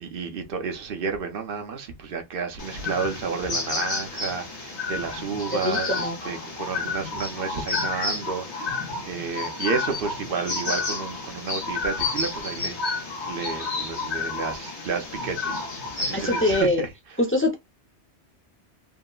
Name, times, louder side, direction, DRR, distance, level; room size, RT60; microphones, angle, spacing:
voice 1, 0.0-15.6 16.0-16.9, right 5 dB, 55° right, 0.9 m, -31 dB
sound 1, 2.6-16.6, left 4 dB, 70° left, 1.3 m, -30 dB
voice 2, 5.6-6.2 16.1-16.8 17.2-17.5, left 1 dB, 20° left, 0.4 m, -23 dB
3.6 x 2.1 x 2.3 m
omnidirectional pair, 1.2 m